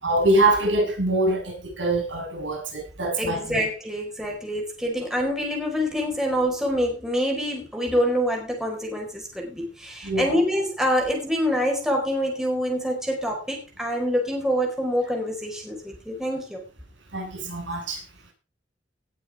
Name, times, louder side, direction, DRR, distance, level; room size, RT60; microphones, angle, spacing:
voice 1, 0.0-3.6 10.0-10.4 17.1-18.0, right 2 dB, 80° right, 6.7 m, -24 dB
voice 2, 3.2-16.7, equal, 5° right, 4.5 m, -26 dB
19.0 x 7.3 x 4.9 m
head